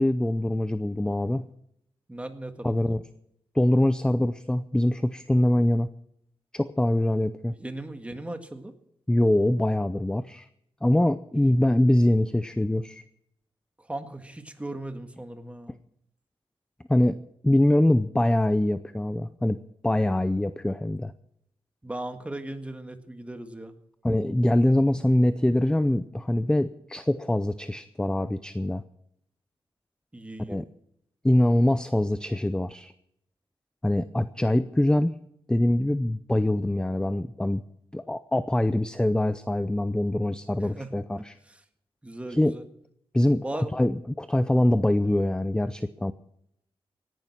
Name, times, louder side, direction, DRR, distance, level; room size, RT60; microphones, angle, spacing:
voice 1, 0.0-1.4 2.6-3.0 3.5-5.9 6.5-7.5 9.1-10.5 10.8-13.0 16.9-17.2 17.4-19.6 19.8-21.1 24.0-28.8 30.5-30.6 31.2-32.9 33.8-35.1 35.5-37.6 37.9-41.4 42.3-42.5 43.1-43.4 43.7-46.1, left 1 dB, 10° left, 13 dB, 0.5 m, -23 dB
voice 2, 2.1-2.7 7.6-8.7 13.8-15.7 21.8-23.7 30.1-30.6 40.6-40.9 41.2-41.6 42.0-42.6 43.4-43.8, right 1 dB, 15° right, 7 dB, 1.8 m, -37 dB
17.5 x 11.0 x 6.0 m, 0.75 s
wide cardioid pair, 120°, 10 cm